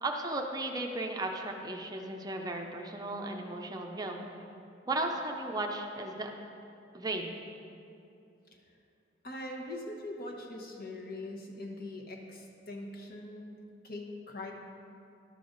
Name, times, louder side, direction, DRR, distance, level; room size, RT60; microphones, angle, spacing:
voice 1, 0.0-4.3 4.9-6.3 6.9-7.4, right 2 dB, 20° right, 2 dB, 0.5 m, -35 dB
voice 2, 9.2-14.5, left 1 dB, 50° left, 1 dB, 1.1 m, -42 dB
11.5 x 6.7 x 3.9 m, 2.6 s
head